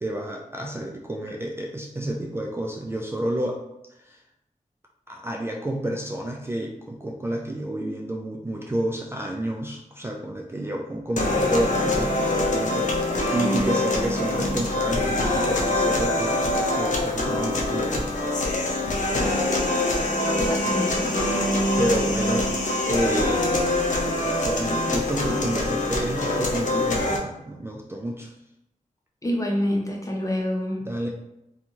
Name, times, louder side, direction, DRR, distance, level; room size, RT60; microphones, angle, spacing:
voice 1, 0.0-3.6 4.0-4.2 5.1-18.1 21.8-22.5 22.9-23.6 24.0-28.3 30.8-31.1, right 1 dB, 20° right, 0 dB, 0.3 m, -30 dB
sound 1, 11.2-27.2, left 2 dB, 65° left, 0.6 m, -24 dB
voice 2, 20.4-21.1 29.2-30.8, left 1 dB, 25° left, -1 dB, 0.7 m, -27 dB
2.6 x 2.3 x 2.9 m, 0.86 s
cardioid pair, 55°, 14 cm